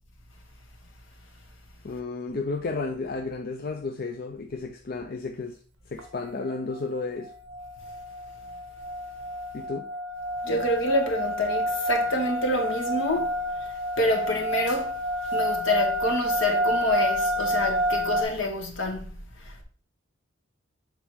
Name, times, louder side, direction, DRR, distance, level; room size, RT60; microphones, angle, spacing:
voice 1, 1.8-5.6 5.9-7.3 9.5-9.9, left 3 dB, 45° left, 0.5 m, -32 dB
sound 1, 6.0-6.1 6.4-6.8 7.2-18.2, equal, 60° right, 1.0 m, -29 dB
voice 2, 10.4-19.1 19.4-19.6, left 1 dB, 65° left, 1.5 m, -27 dB
7.2 x 3.8 x 4.6 m
head